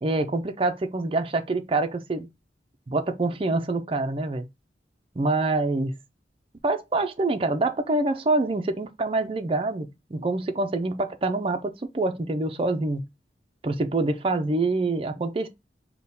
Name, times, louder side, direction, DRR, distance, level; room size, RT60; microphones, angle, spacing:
voice 1, 0.0-2.3 2.9-4.5 5.2-6.0 6.6-13.0 13.6-15.5, right 2 dB, 30° right, 0.4 m, -26 dB
3.6 x 2.2 x 4.1 m
head